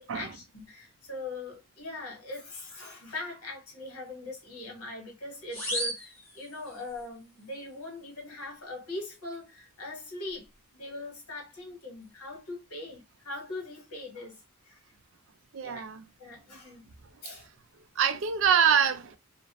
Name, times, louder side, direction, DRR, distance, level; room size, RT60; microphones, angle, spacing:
voice 1, 0.0-10.5 10.7-14.8 15.6-15.8 16.2-16.9 17.2-17.5, left 2 dB, 90° left, 1.3 m, -41 dB
sound 1, 5.5-7.0, equal, 10° left, 0.9 m, -35 dB
voice 2, 15.5-16.0 18.0-19.2, right 7 dB, 60° right, 0.4 m, -25 dB
2.4 x 2.0 x 2.8 m
head